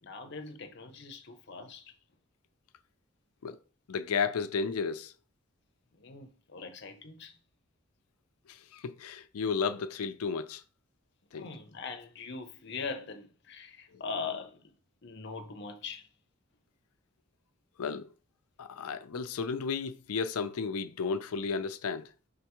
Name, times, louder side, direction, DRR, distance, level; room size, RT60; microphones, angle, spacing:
voice 1, 0.0-1.9 5.9-7.4 11.3-14.7 15.0-16.1, left 4 dB, 50° left, 0.7 m, -41 dB
voice 2, 3.9-5.1 8.5-10.6 11.3-11.5 17.8-18.1 18.6-22.1, left 5 dB, 85° left, 0.5 m, -33 dB
5.1 x 3.4 x 3.0 m
head